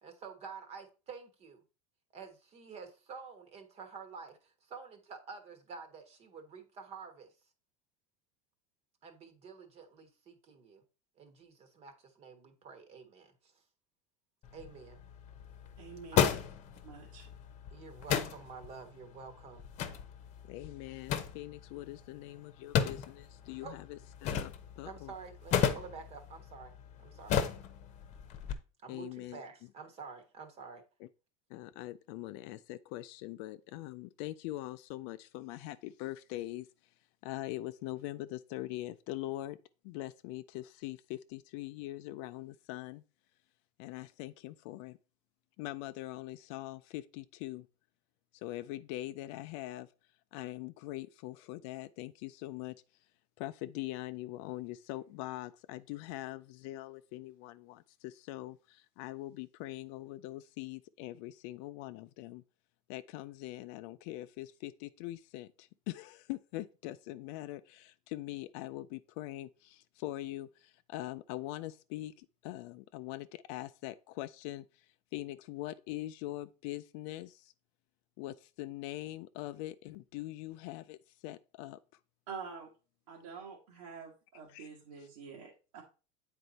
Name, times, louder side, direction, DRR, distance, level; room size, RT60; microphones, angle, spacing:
voice 1, 0.0-1.6 2.1-7.3 9.0-10.8 11.2-13.5 14.5-15.0 17.7-19.6 23.6-23.7 24.8-26.7 27.0-27.4 28.8-30.8, right 5 dB, 40° right, 1.3 m, -49 dB
sound 1, 14.4-28.5, left 8 dB, 45° left, 0.9 m, -36 dB
voice 2, 15.8-16.5 16.8-17.3 82.3-82.7 83.1-85.8, right 6 dB, 80° right, 1.8 m, -47 dB
voice 3, 20.5-25.1 28.9-29.4 31.5-36.7 37.2-39.6 39.8-43.0 43.8-45.0 45.6-47.7 48.3-49.9 50.3-52.7 53.4-62.4 62.9-74.9 75.1-77.5 78.2-81.0 81.2-81.8 84.5-84.7, left 16 dB, 65° left, 0.4 m, -42 dB
7.9 x 4.4 x 4.0 m
supercardioid pair, 125°, 17 cm